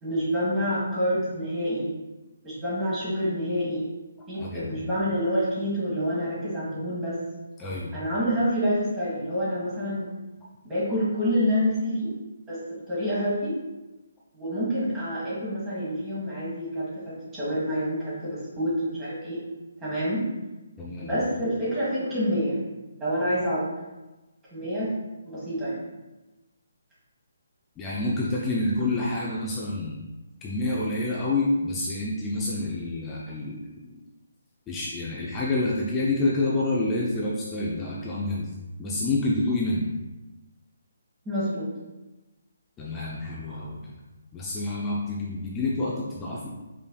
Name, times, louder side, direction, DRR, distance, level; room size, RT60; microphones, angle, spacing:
voice 1, 0.0-1.9 2.4-3.9 4.3-7.2 7.9-10.1 10.6-12.1 12.5-12.6 12.9-13.6 14.3-19.4 19.8-20.3 21.0-22.6 23.0-23.6 24.5-24.9 25.2-25.8 41.2-41.7, equal, 15° right, -10 dB, 1.4 m, -27 dB
voice 2, 4.4-4.9 7.6-8.0 20.8-21.2 27.8-30.0 30.4-34.0 34.7-38.5 38.8-39.9 42.8-43.9 44.3-46.5, left 2 dB, 15° left, -5 dB, 0.5 m, -28 dB
5.3 x 3.3 x 2.2 m, 1.1 s
figure-of-eight pair, 145°, 0 cm